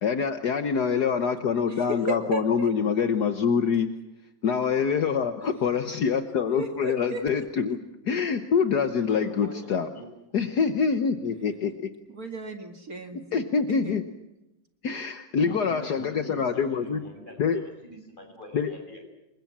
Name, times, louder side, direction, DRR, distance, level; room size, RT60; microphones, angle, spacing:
voice 1, 0.0-4.0 4.4-7.8 8.1-9.9 10.3-11.8 13.3-14.0 14.8-17.0 17.4-17.6 18.5-18.7, left 6 dB, 60° left, 9 dB, 1.7 m, -25 dB
voice 2, 1.7-2.7 6.5-7.7 12.1-13.9, right 2 dB, 50° right, 6 dB, 2.5 m, -35 dB
voice 3, 9.1-9.7 9.9-10.0 15.4-19.0, left 1 dB, 25° left, 3 dB, 6.7 m, -42 dB
28.5 x 23.0 x 7.5 m, 0.95 s
omnidirectional pair, 2.0 m